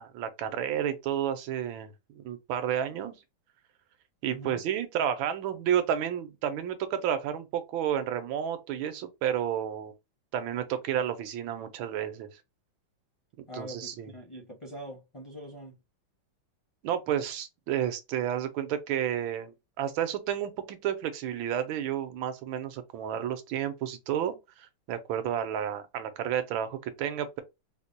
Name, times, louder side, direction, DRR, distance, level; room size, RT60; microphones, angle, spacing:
voice 1, 0.0-3.2 4.2-9.9 10.3-12.3 13.5-14.1 16.8-27.4, right 9 dB, 85° right, 1.4 m, -31 dB
voice 2, 4.3-4.6 13.5-15.8, equal, 40° left, 0.4 m, -43 dB
4.6 x 2.2 x 2.6 m
omnidirectional pair, 2.2 m